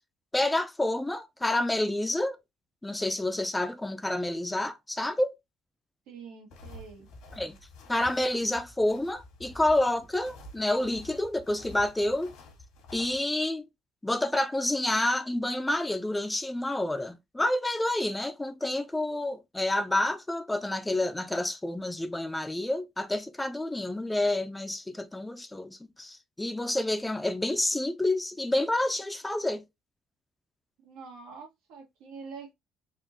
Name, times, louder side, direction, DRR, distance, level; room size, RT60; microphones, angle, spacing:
voice 1, 0.3-2.4 2.8-5.3 7.4-7.6 7.9-12.3 12.9-13.7 14.0-29.6, left 1 dB, 10° left, 0.5 m, -29 dB
voice 2, 6.1-7.1 30.8-32.5, right 5 dB, 90° right, 1.7 m, -45 dB
sound 1, 6.5-13.2, left 1 dB, 85° left, 1.6 m, -49 dB
4.2 x 2.6 x 2.8 m
cardioid pair, 100°, 0 cm